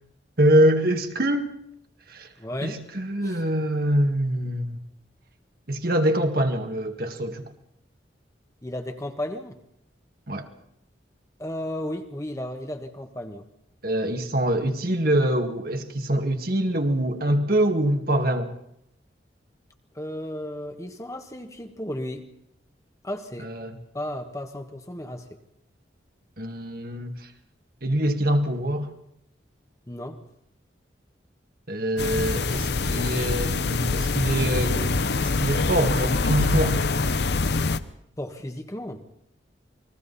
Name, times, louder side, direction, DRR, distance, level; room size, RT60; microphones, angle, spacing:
voice 1, 0.4-1.4 2.1-2.3 2.6-4.8 5.7-7.4 10.3-10.5 13.8-18.5 23.4-23.8 26.4-27.3 27.8-28.9 31.7-37.1, right 1 dB, 55° right, 2.1 m, -24 dB
voice 2, 2.4-2.8 3.2-3.4 8.6-9.6 11.4-13.4 19.9-22.3 23.0-23.5 23.9-25.4 29.9-30.2 38.2-39.0, left 1 dB, 15° left, 1.5 m, -34 dB
sound 1, 32.0-37.8, left 3 dB, 65° left, 0.8 m, -24 dB
29.0 x 21.5 x 4.2 m
head